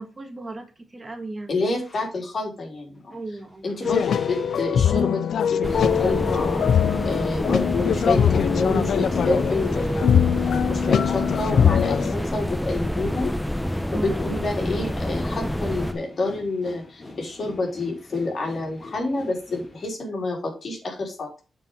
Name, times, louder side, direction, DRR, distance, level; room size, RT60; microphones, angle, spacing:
voice 1, 0.0-1.5 3.1-3.7 13.9-14.2, right 2 dB, 25° right, 6 dB, 1.6 m, -35 dB
voice 2, 1.5-3.2 3.6-6.6 7.0-10.4 10.7-13.3 13.9-21.4, left 2 dB, 50° left, 0 dB, 3.8 m, -28 dB
sound 1, 1.7-2.1 3.0-19.9, left 2 dB, 35° left, 3.1 m, -46 dB
sound 2, 3.8-12.1, left 8 dB, 75° left, 0.4 m, -22 dB
sound 3, 5.6-15.9, left 1 dB, 5° left, 0.8 m, -28 dB
8.6 x 4.8 x 5.2 m, 0.33 s
cardioid pair, 75°, 0 cm